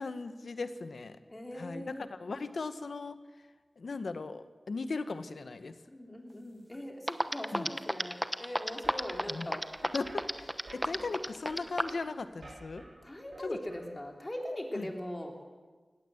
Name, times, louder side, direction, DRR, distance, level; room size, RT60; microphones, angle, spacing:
voice 1, 0.0-1.2 1.5-3.2 3.8-5.8 7.5-7.7 9.3-9.5 9.9-12.8 13.4-13.6 14.7-14.9, left 3 dB, 85° left, 11 dB, 1.0 m, -38 dB
voice 2, 1.3-2.0 5.9-9.6 13.0-15.3, left 1 dB, 25° left, 2 dB, 3.6 m, -40 dB
sound 1, 6.7-6.8 7.1-12.0, equal, 10° right, 1.0 m, -31 dB
sound 2, 8.7-13.8, right 1 dB, 65° right, 5.9 m, -51 dB
19.5 x 17.0 x 7.9 m, 1.4 s
wide cardioid pair, 70°, 0 cm